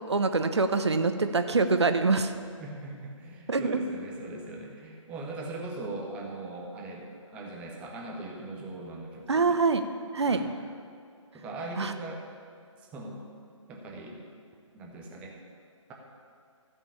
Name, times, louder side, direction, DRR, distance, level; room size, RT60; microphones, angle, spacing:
voice 1, 0.1-2.3 3.5-3.8 9.3-9.8 10.1-10.4 11.8-11.9, right 4 dB, 55° right, 8 dB, 0.9 m, -25 dB
voice 2, 2.6-7.0 7.3-9.6 10.3-10.5 11.3-12.3 12.9-13.3 13.7-14.2 14.7-15.3, right 2 dB, 5° right, -1 dB, 0.7 m, -40 dB
14.0 x 5.4 x 7.0 m, 2.2 s
figure-of-eight pair, 150°, 17 cm